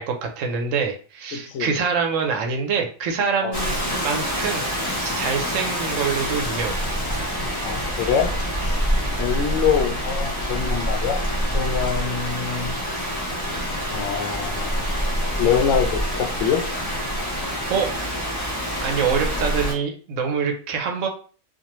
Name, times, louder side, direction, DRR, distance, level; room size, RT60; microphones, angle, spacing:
voice 1, 0.0-4.7 5.0-6.8 17.7-17.9 18.8-21.1, right 6 dB, 80° right, 3 dB, 1.0 m, -25 dB
voice 2, 1.3-1.8 3.4-3.6 7.6-8.3 8.6-8.8 9.2-11.2 11.5-12.7 13.9-14.9 15.4-16.6, left 7 dB, 75° left, 4 dB, 0.9 m, -24 dB
Rain, 3.5-19.7, equal, 20° left, 0.7 m, -26 dB
2.5 x 2.2 x 2.9 m, 0.39 s
omnidirectional pair, 1.3 m